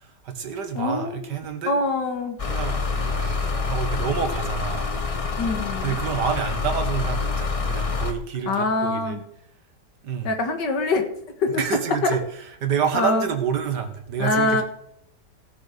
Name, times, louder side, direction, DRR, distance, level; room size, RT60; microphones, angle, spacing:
voice 1, 0.2-1.7 2.5-4.9 5.8-9.2 10.0-10.3 11.5-12.2 12.6-14.6, right 7 dB, 80° right, 7 dB, 2.1 m, -28 dB
voice 2, 0.7-1.2 1.7-2.4 5.4-6.0 8.5-9.2 10.2-11.1 11.4-11.6 12.0-12.2 12.9-13.2 14.2-14.6, left 3 dB, 90° left, 5 dB, 2.3 m, -24 dB
sound 1, 2.4-8.1, left 4 dB, 30° left, 0.7 m, -26 dB
17.0 x 6.6 x 5.1 m, 0.72 s
omnidirectional pair, 1.8 m